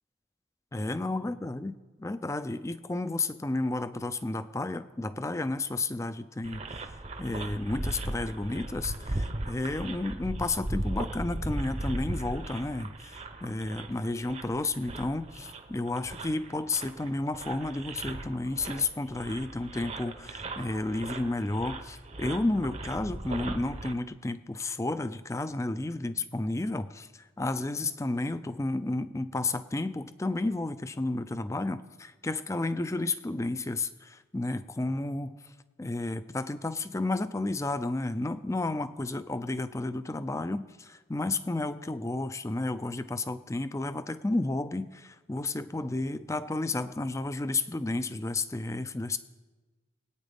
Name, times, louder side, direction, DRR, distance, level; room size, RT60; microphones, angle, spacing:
voice 1, 0.7-6.8 7.2-35.5 35.8-49.2, left 2 dB, 15° left, 13 dB, 0.4 m, -32 dB
sound 1, 6.4-23.9, right 2 dB, 35° right, 0.7 m, -38 dB
22.5 x 9.1 x 3.5 m, 1.3 s
head